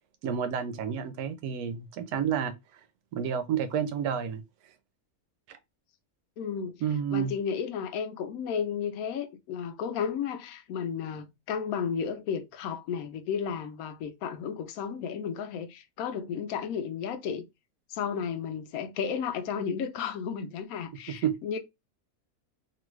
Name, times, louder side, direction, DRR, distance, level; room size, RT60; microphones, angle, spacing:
voice 1, 0.2-2.5 3.1-4.4 6.8-7.3 21.1-21.6, right 8 dB, 80° right, 1.1 m, -30 dB
voice 2, 6.4-6.8 7.1-17.4 17.9-21.6, left 7 dB, 75° left, 1.0 m, -33 dB
2.9 x 2.4 x 3.1 m
omnidirectional pair, 1.6 m